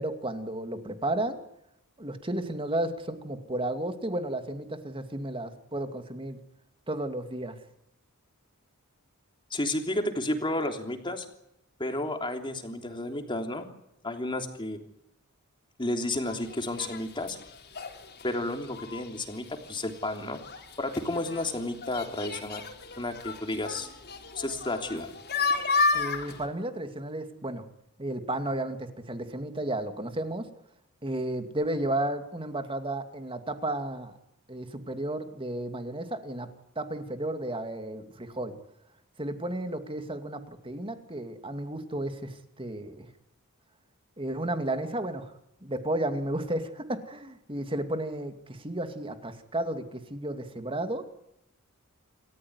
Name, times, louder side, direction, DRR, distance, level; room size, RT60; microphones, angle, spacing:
voice 1, 0.0-1.4 2.0-6.4 6.9-7.6 25.9-27.6 28.0-30.5 31.0-34.2 34.5-36.5 36.8-38.5 39.2-43.1 44.2-45.3 45.6-51.0, right 1 dB, 25° right, 8 dB, 2.4 m, -33 dB
voice 2, 9.5-11.3 11.8-13.7 14.0-14.8 15.8-17.4 18.2-20.4 20.8-22.6 23.0-23.9 24.4-25.1, left 1 dB, 20° left, 5 dB, 3.2 m, -32 dB
sound 1, 16.3-26.5, left 4 dB, 50° left, 4.0 m, -33 dB
28.0 x 14.5 x 9.6 m, 0.83 s
head